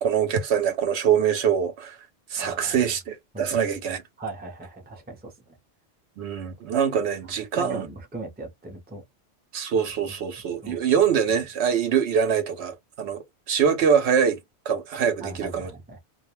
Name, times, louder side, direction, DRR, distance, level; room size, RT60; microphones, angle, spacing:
voice 1, 0.0-4.0 6.2-7.9 9.5-14.4 14.7-15.7, right 7 dB, 70° right, 0.8 m, -24 dB
voice 2, 2.4-2.8 3.3-3.5 4.2-5.6 7.6-9.0 9.8-9.9 10.6-10.8 15.2-16.0, right 3 dB, 10° right, 0.6 m, -38 dB
2.3 x 2.2 x 3.0 m
omnidirectional pair, 1.2 m